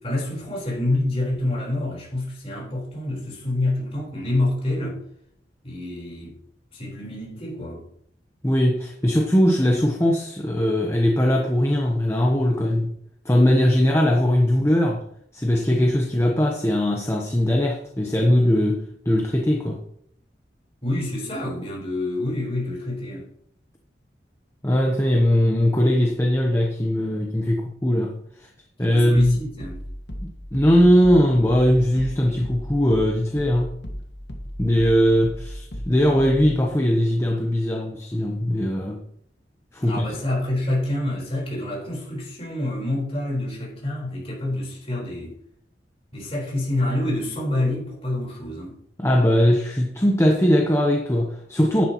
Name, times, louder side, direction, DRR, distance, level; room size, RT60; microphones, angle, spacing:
voice 1, 0.0-5.0 5.6-6.3 6.7-7.8 20.8-23.3 28.9-29.8 39.8-45.4 46.1-48.8, left 1 dB, 30° left, 4.4 m, -27 dB
voice 2, 8.4-12.9 13.2-15.0 15.3-19.8 24.6-28.1 28.4-28.5 28.8-29.4 30.2-33.7 34.6-39.0 39.7-40.1 49.0-51.8, equal, 15° left, 1.0 m, -20 dB
sound 1, 29.2-36.7, equal, 70° left, 1.6 m, -36 dB
11.0 x 10.5 x 3.1 m
head